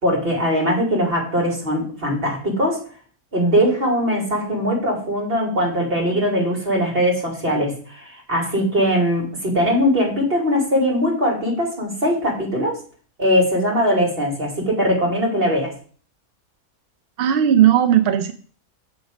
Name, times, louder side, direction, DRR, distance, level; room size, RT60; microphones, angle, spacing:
voice 1, 0.0-2.8 3.3-12.8 13.2-15.7, equal, 40° right, 0 dB, 2.7 m, -20 dB
voice 2, 17.2-18.3, right 10 dB, 60° right, 9 dB, 0.6 m, -16 dB
7.1 x 6.4 x 5.0 m, 0.43 s
omnidirectional pair, 1.6 m